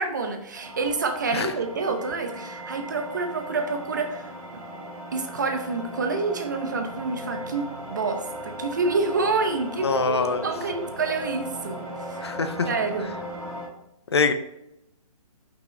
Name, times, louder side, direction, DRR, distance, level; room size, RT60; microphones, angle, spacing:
voice 1, 0.0-4.3 5.1-12.3 12.6-13.1, right 4 dB, 30° right, 5 dB, 0.7 m, -28 dB
sound 1, 0.5-13.7, equal, 5° right, 1.3 m, -37 dB
voice 2, 9.8-10.5 12.2-12.7 14.1-14.3, left 4 dB, 45° left, 9 dB, 0.5 m, -23 dB
6.5 x 5.6 x 3.2 m, 0.84 s
hypercardioid pair, 175°, 19 cm